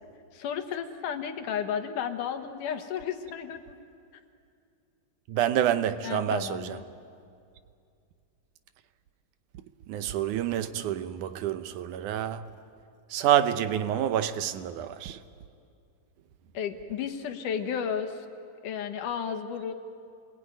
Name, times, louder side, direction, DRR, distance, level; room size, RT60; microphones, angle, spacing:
voice 1, 0.3-3.8 6.0-6.8 16.5-18.3 18.6-19.7, left 7 dB, 85° left, 2.9 m, -33 dB
voice 2, 5.3-6.8 9.9-12.5 13.1-15.2, right 10 dB, 80° right, 2.4 m, -27 dB
29.0 x 21.5 x 9.3 m
omnidirectional pair, 3.5 m